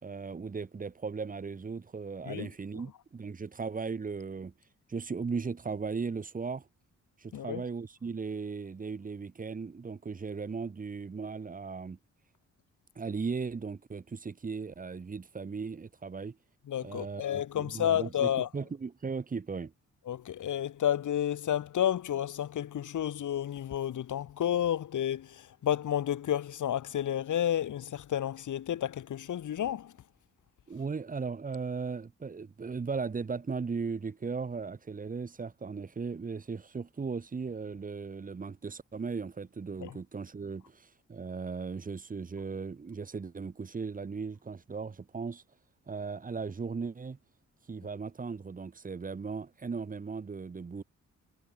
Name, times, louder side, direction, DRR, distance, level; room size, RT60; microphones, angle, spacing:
voice 1, 0.0-4.5 4.9-6.7 7.2-12.0 12.9-16.4 16.8-19.7 30.7-45.4 45.9-47.2 47.7-50.8, right 5 dB, 25° right, 2.8 m, -37 dB
voice 2, 7.3-7.7 16.7-18.5 20.1-29.9 39.8-39.9, left 10 dB, 75° left, 6.5 m, -31 dB
wide cardioid pair, 165°, 30 cm